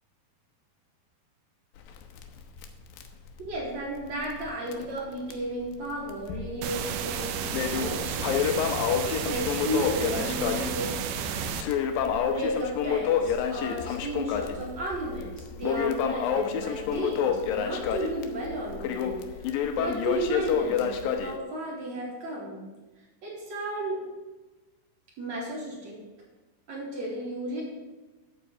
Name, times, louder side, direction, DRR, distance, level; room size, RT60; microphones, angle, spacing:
Crackle, 1.8-4.5 4.7-4.8 5.3-5.4 6.1-6.7 7.1-21.3, left 8 dB, 75° left, 2.5 m, -29 dB
voice 1, 3.4-8.6 9.2-11.0 12.1-22.6 23.2-24.0 25.2-26.0 26.7-27.6, right 1 dB, 45° right, -5 dB, 4.1 m, -34 dB
sound 1, 6.6-11.6, right 8 dB, 75° right, 2.0 m, -32 dB
12.0 x 4.5 x 8.2 m, 1.2 s
omnidirectional pair, 4.4 m